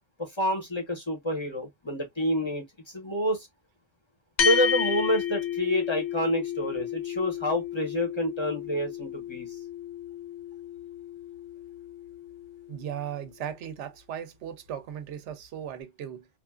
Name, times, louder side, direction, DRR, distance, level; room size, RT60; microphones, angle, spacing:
voice 1, 0.2-3.5 4.4-9.6, equal, 30° left, 0.7 m, -28 dB
sound 1, 4.4-13.1, left 7 dB, 80° left, 1.0 m, -32 dB
voice 2, 12.7-16.3, right 9 dB, 90° right, 0.9 m, -37 dB
3.0 x 2.5 x 2.3 m
omnidirectional pair, 1.2 m